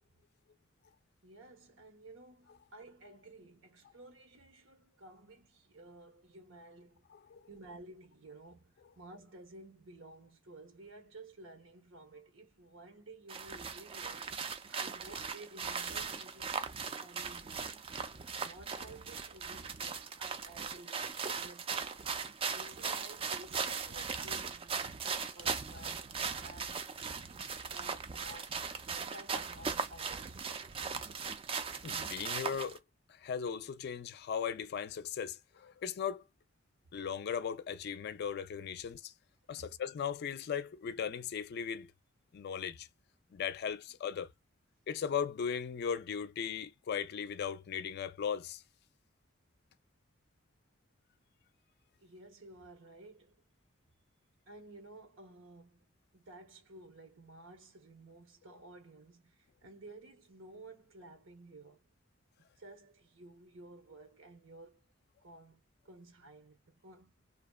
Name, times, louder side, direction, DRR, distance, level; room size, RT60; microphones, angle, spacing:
voice 1, 1.2-7.1 7.5-14.4 14.7-16.6 17.0-17.8 18.4-21.8 22.2-26.1 26.4-26.8 27.6-28.5 28.9-30.5 39.6-39.7 52.0-53.4 54.5-55.9 56.1-61.9 62.4-64.8 65.2-67.3, right 2 dB, 80° right, 0.9 m, -54 dB
sound 1, 13.3-32.8, right 5 dB, 30° right, 0.3 m, -39 dB
voice 2, 31.8-32.8 33.1-36.2 36.9-39.1 39.5-41.9 42.3-42.9 43.3-44.3 44.9-48.6, left 7 dB, 55° left, 0.3 m, -37 dB
2.7 x 2.1 x 2.2 m
head